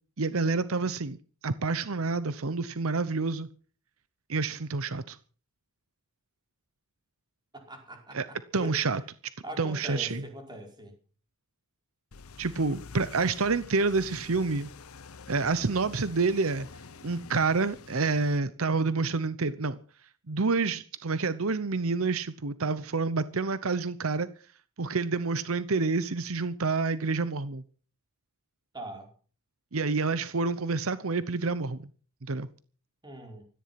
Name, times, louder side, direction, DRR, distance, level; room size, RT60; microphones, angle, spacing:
voice 1, 0.2-1.2 1.4-3.5 4.3-5.2 8.1-8.3 8.5-9.0 9.6-10.2 12.4-14.7 15.3-16.7 17.0-19.8 20.3-24.3 24.8-27.6 29.7-31.9 32.2-32.5, right 4 dB, 70° right, 0.8 m, -28 dB
voice 2, 7.5-8.9 9.4-11.0 28.7-29.1 33.0-33.4, right 1 dB, 20° right, 4.9 m, -42 dB
sound 1, 12.1-18.4, left 4 dB, 75° left, 0.9 m, -47 dB
17.0 x 13.5 x 5.9 m
head